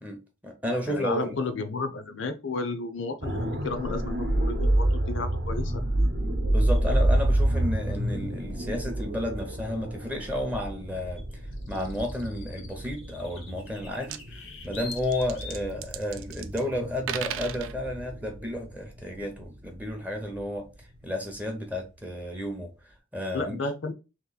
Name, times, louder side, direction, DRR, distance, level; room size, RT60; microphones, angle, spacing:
voice 1, 0.0-1.5 6.2-11.4 11.7-23.6, left 1 dB, 5° right, 0.6 m, -32 dB
voice 2, 0.9-6.1 23.3-23.9, left 3 dB, 70° left, 0.6 m, -33 dB
sound 1, 3.2-21.1 21.4-21.6, right 1 dB, 55° right, 0.8 m, -29 dB
sound 2, 6.7-6.9 9.4-9.5 11.2-15.7, left 4 dB, 85° left, 1.1 m, -45 dB
sound 3, 13.7-13.8 14.0-14.2 14.7-16.6 17.0-17.7, right 10 dB, 90° right, 0.4 m, -36 dB
3.1 x 2.9 x 3.9 m
head